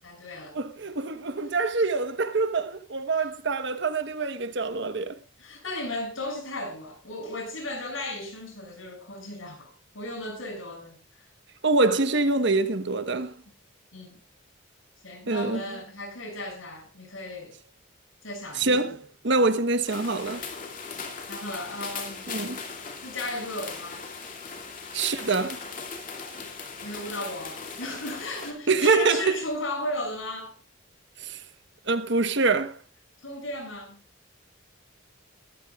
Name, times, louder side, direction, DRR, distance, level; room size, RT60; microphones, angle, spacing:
voice 1, 0.0-0.6 3.2-3.3 5.4-11.0 13.9-14.2 15.0-17.5 18.2-18.8 21.3-22.3 23.0-24.0 26.8-30.5 33.2-34.0, left 1 dB, 85° left, 6.8 m, -35 dB
voice 2, 0.5-5.2 11.6-13.4 15.3-15.8 18.6-20.5 22.3-22.6 24.9-25.6 28.7-29.4 31.2-31.4 31.9-32.8, right 3 dB, 60° right, 1.2 m, -25 dB
sound 1, 19.9-28.5, left 5 dB, 45° left, 2.6 m, -38 dB
21.0 x 13.5 x 2.4 m
head